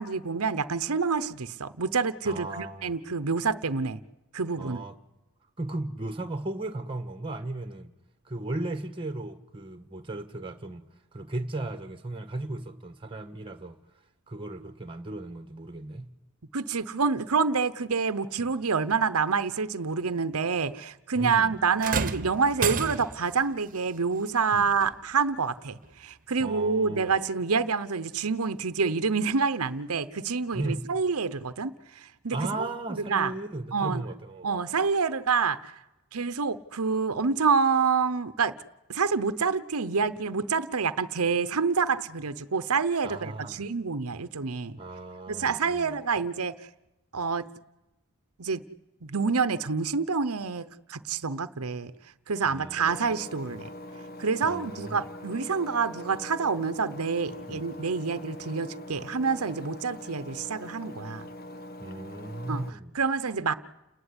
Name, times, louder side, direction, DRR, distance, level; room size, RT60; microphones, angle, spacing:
voice 1, 0.0-4.0 4.3-4.8 16.5-32.4 33.1-33.3 33.7-34.0 34.4-35.7 36.1-38.5 38.9-44.8 45.3-46.5 47.1-47.4 48.4-48.6 49.0-50.6 50.9-51.9 52.3-53.7 54.2-61.2 62.5-62.6 62.9-63.5, right 5 dB, 80° right, 0.9 m, -27 dB
voice 2, 2.2-2.9 4.6-5.0 5.6-7.9 8.2-10.8 11.1-13.8 14.3-16.1 18.4-18.5 21.1-21.6 24.5-24.7 26.4-27.1 30.5-30.8 32.3-34.6 43.0-43.7 44.8-46.0 52.4-53.0 54.4-55.0 57.5-57.6 61.8-63.0, right 2 dB, 25° right, 1.5 m, -36 dB
sound 1, 21.8-23.3 24.8-25.0 25.8-25.9, right 5 dB, 40° right, 1.3 m, -30 dB
Engine, 52.8-62.7, left 1 dB, 45° left, 1.4 m, -42 dB
29.5 x 19.5 x 9.8 m
head